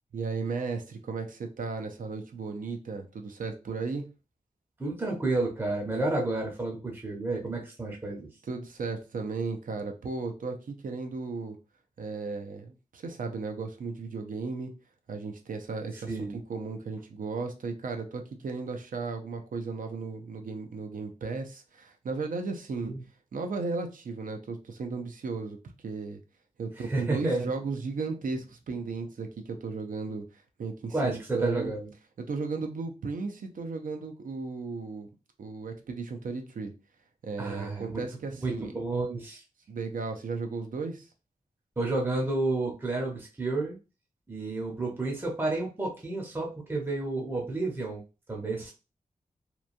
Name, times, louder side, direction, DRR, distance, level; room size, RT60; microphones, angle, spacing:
voice 1, 0.1-4.0 8.5-11.6 12.0-14.7 15.1-22.9 23.3-25.6 25.8-26.2 26.6-30.3 30.6-31.7 32.3-35.1 35.4-36.7 37.2-38.7 39.7-41.1, right 4 dB, 75° right, 4 dB, 0.6 m, -35 dB
voice 2, 4.8-8.3 16.1-16.4 22.8-23.0 26.8-27.5 30.9-31.9 37.4-38.0 38.4-39.4 41.8-43.8 44.3-48.0 48.3-48.7, right 2 dB, 15° right, -1 dB, 0.7 m, -31 dB
2.9 x 2.2 x 2.5 m, 0.30 s
wide cardioid pair, 125°, 14 cm